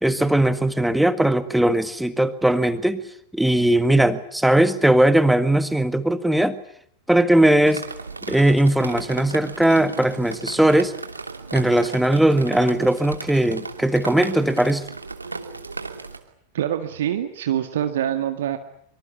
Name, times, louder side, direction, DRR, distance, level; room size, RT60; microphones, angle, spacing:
voice 1, 0.0-3.0 3.3-6.6 7.1-7.8 8.3-10.9 11.5-14.8, right 1 dB, ahead, 12 dB, 1.8 m, -19 dB
Drip, 7.7-16.2, right 3 dB, 80° right, 2.8 m, -35 dB
voice 2, 16.5-18.6, right 10 dB, 60° right, 7 dB, 1.8 m, -25 dB
25.0 x 24.5 x 8.7 m, 0.67 s
figure-of-eight pair, 90°, 0 cm